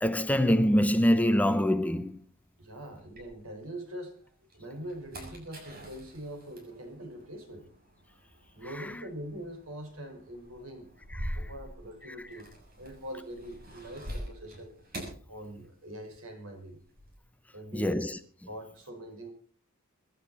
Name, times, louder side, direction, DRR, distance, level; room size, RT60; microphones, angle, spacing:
voice 1, 0.0-2.2 11.2-11.4 17.7-18.2, equal, 5° left, 0.9 m, -24 dB
sound 1, 1.4-3.9 4.3-16.1 16.4-17.2, equal, 45° right, 6.8 m, -45 dB
voice 2, 2.6-7.7 8.5-10.9 11.3-12.5 12.8-14.7 15.3-16.8 17.5-18.0 18.5-19.3, equal, 80° right, 5.3 m, -43 dB
24.0 x 12.0 x 4.2 m
head